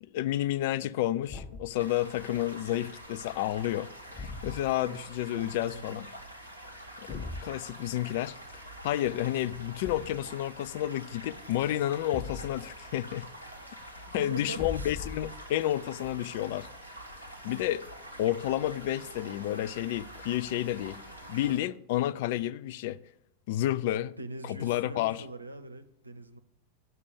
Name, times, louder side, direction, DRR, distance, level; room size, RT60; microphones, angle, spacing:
voice 1, 0.0-6.1 7.0-13.3 14.1-16.7 17.4-17.9 18.2-21.0 21.3-23.0 23.5-24.1 24.4-25.2, left 13 dB, 50° left, 0.4 m, -31 dB
Thump thud, 1.3-1.8 4.1-4.8 7.1-7.5 9.8-10.3 12.1-12.8 14.5-15.5, left 3 dB, 25° left, 1.1 m, -40 dB
sound 1, 1.8-21.6, right 1 dB, 90° left, 1.8 m, -46 dB
voice 2, 4.8-6.0 14.1-15.0 24.2-26.4, right 2 dB, 80° right, 0.7 m, -43 dB
9.7 x 6.7 x 7.0 m
figure-of-eight pair, 90°, 0 cm